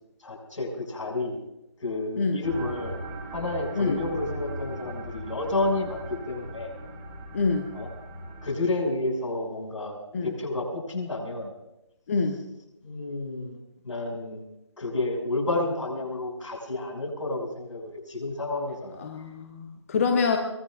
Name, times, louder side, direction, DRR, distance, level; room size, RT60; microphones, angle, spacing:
voice 1, 0.2-1.4 1.8-3.0 3.3-6.0 6.3-6.7 7.7-7.9 8.4-10.0 10.2-11.5 12.8-13.6 13.8-14.4 14.8-19.0, left 2 dB, 75° left, 1 dB, 6.5 m, -30 dB
sound 1, 2.4-8.6, right 1 dB, 15° right, 2.1 m, -38 dB
voice 2, 7.3-7.7 10.1-10.3 12.1-12.4 19.0-20.4, left 4 dB, 25° left, 3 dB, 1.0 m, -26 dB
23.0 x 20.5 x 2.5 m, 0.88 s
figure-of-eight pair, 160°, 16 cm